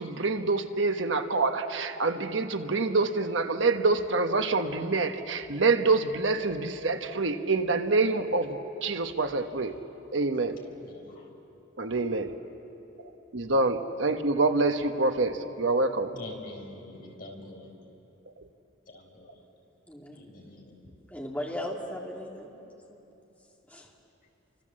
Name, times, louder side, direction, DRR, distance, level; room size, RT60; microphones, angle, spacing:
voice 1, 0.0-9.8 10.1-10.6 11.8-12.3 13.3-16.1, right 3 dB, 70° right, 7 dB, 1.2 m, -26 dB
voice 2, 10.8-11.3 16.1-17.7 18.9-19.4 20.1-20.9, left 1 dB, 45° left, 1 dB, 4.3 m, -46 dB
voice 3, 19.9-20.2 21.1-22.6 22.9-23.0 23.7-23.9, left 1 dB, 10° left, -2 dB, 2.5 m, -37 dB
29.0 x 25.5 x 7.6 m, 3.0 s
head